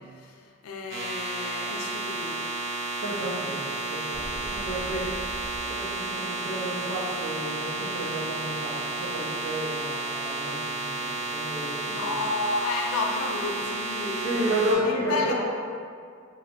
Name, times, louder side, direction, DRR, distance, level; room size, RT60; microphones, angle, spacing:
voice 1, 0.0-2.5 11.9-14.6 14.9-15.3, left 3 dB, 85° left, 1 dB, 0.4 m, -32 dB
sound 1, 0.9-14.7, right 2 dB, 60° right, 0.5 m, -32 dB
voice 2, 3.0-5.1 5.6-12.1 14.2-15.3, right 1 dB, 75° right, -8 dB, 0.9 m, -31 dB
sound 2, 4.1-5.8, equal, ahead, 0.5 m, -41 dB
3.1 x 2.2 x 2.3 m, 2.2 s
head